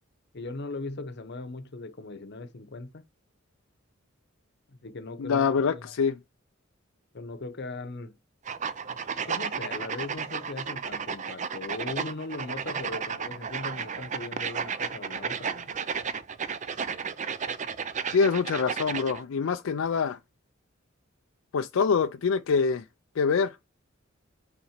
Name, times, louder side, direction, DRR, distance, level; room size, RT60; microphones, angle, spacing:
voice 1, 0.3-3.0 4.7-5.8 7.1-8.2 9.3-15.8, left 3 dB, 55° left, 0.9 m, -39 dB
voice 2, 5.2-6.1 18.1-20.2 21.5-22.8 23.2-23.6, left 5 dB, 75° left, 0.4 m, -25 dB
sound 1, 8.5-19.2, right 6 dB, 35° right, 0.5 m, -33 dB
5.7 x 4.1 x 5.7 m
head